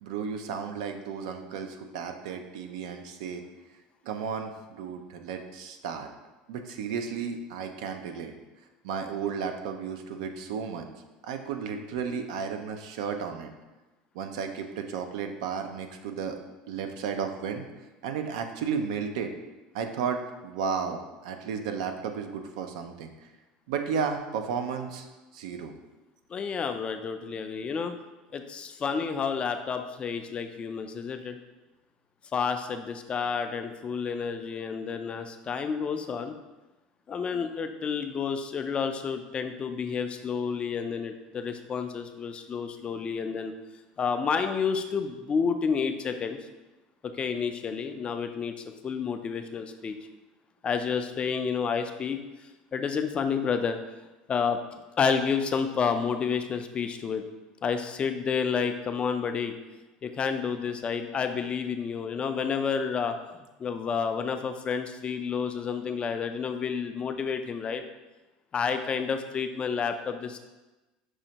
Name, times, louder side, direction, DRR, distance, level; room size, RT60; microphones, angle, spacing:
voice 1, 0.0-3.4 4.0-6.1 6.5-8.3 8.8-10.9 11.2-13.5 14.1-16.4 16.7-17.7 18.0-19.3 19.7-23.1 23.7-25.1 25.3-25.7, right 6 dB, 80° right, 6 dB, 0.4 m, -33 dB
voice 2, 26.3-28.0 28.3-31.4 32.3-36.3 37.1-43.5 44.0-46.4 47.0-48.5 48.8-50.0 50.6-52.2 52.7-53.8 54.3-54.6 55.0-57.2 57.6-59.5 60.0-63.2 63.6-67.8 68.5-70.4, left 6 dB, 30° left, 7 dB, 0.3 m, -30 dB
6.1 x 2.1 x 2.8 m, 1.1 s
supercardioid pair, 105°, 4 cm